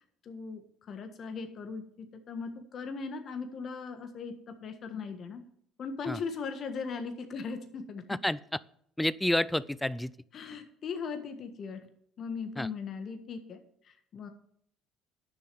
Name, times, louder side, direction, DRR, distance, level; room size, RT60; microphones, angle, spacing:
voice 1, 0.2-5.4 5.8-8.2 10.3-11.8 12.2-14.3, left 5 dB, 50° left, 7 dB, 1.5 m, -39 dB
voice 2, 9.0-10.1 12.6-12.7, left 1 dB, 5° left, 19 dB, 0.4 m, -29 dB
11.0 x 6.8 x 6.9 m, 0.68 s
hypercardioid pair, 70°, 0 cm